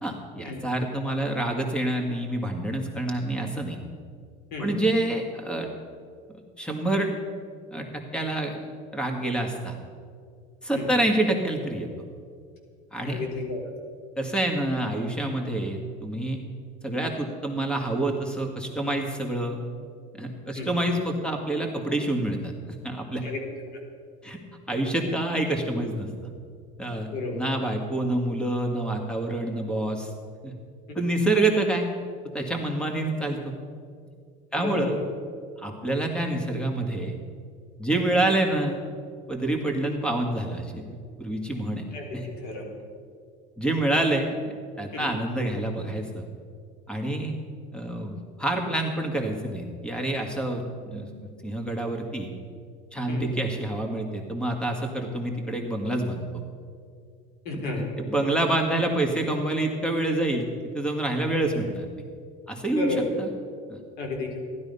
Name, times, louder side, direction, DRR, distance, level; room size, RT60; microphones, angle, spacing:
voice 1, 0.0-3.8 4.6-5.7 6.6-7.1 7.7-8.5 8.9-9.7 10.6-11.9 12.9-13.2 14.2-16.4 16.8-19.6 20.2-23.2 24.2-24.4 24.7-26.1 26.8-30.1 30.4-30.5 30.9-31.9 32.3-33.5 34.5-35.0 35.6-37.1 37.8-38.7 39.3-40.8 41.2-41.8 42.1-42.2 43.6-46.2 46.9-47.3 47.7-50.6 50.9-52.3 52.9-56.2 57.5-60.4 60.7-61.9 62.5-63.3 63.7-63.8, right 1 dB, 5° left, 3 dB, 1.8 m, -27 dB
voice 2, 13.0-13.6 20.5-20.7 23.2-23.4 27.1-27.3 31.0-31.1 34.6-35.0 37.9-38.0 41.9-42.6 44.9-45.1 53.1-53.3 57.4-57.9 62.8-63.0 64.0-64.4, left 3 dB, 65° left, 1 dB, 3.8 m, -32 dB
15.5 x 12.0 x 5.5 m, 2.2 s
cardioid pair, 135°, 17 cm